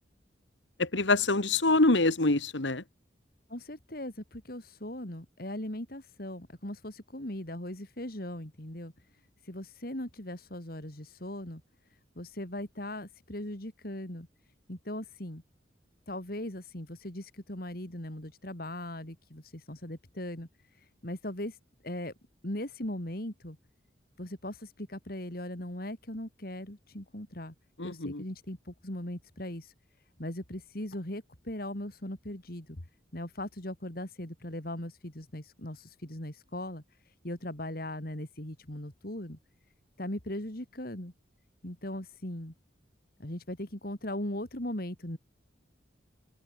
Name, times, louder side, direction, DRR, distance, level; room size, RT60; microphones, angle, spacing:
voice 1, 0.8-2.8 27.8-28.2, left 2 dB, 80° left, 2.0 m, -25 dB
voice 2, 3.5-8.9 9.4-11.6 12.2-14.3 14.7-15.4 16.1-20.5 20.8-21.6 21.8-22.1 22.4-23.6 24.2-27.5 27.8-29.7 30.2-32.8 33.1-36.8 37.2-39.4 40.0-41.1 41.6-42.5 43.2-45.2, left 1 dB, 50° left, 3.5 m, -39 dB
open air
head